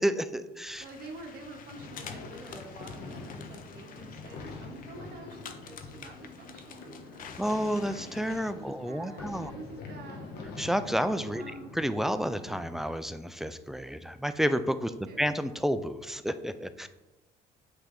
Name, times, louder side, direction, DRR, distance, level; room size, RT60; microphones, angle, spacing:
voice 1, 0.0-0.8 7.4-9.5 10.6-11.4 11.8-14.9 15.2-16.9, equal, ahead, 11 dB, 0.3 m, -30 dB
sound 1, 0.7-8.5, left 7 dB, 55° left, 0.7 m, -49 dB
voice 2, 0.8-7.4 8.5-10.3 11.3-11.7 14.8-15.3, right 2 dB, 65° right, 2 dB, 1.3 m, -47 dB
sound 2, 1.7-12.9, left 3 dB, 75° left, 1.1 m, -45 dB
8.7 x 3.3 x 3.8 m, 1.1 s
cardioid pair, 110°, 17 cm